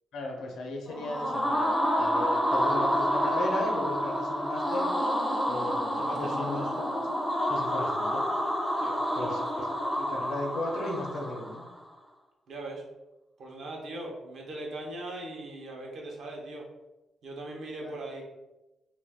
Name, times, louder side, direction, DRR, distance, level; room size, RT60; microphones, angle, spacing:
voice 1, 0.1-1.7 2.0-4.9 5.5-7.0 7.5-8.2 9.2-11.6 17.8-18.0, left 1 dB, 85° left, 1 dB, 0.6 m, -36 dB
sound 1, 0.9-11.7, equal, ahead, 0.4 m, -29 dB
voice 2, 6.0-6.7 8.8-9.7 12.5-12.8 13.4-16.6 17.2-18.2, right 2 dB, 70° right, -1 dB, 0.7 m, -40 dB
2.5 x 2.3 x 3.4 m, 1.0 s
cardioid pair, 115°, 0 cm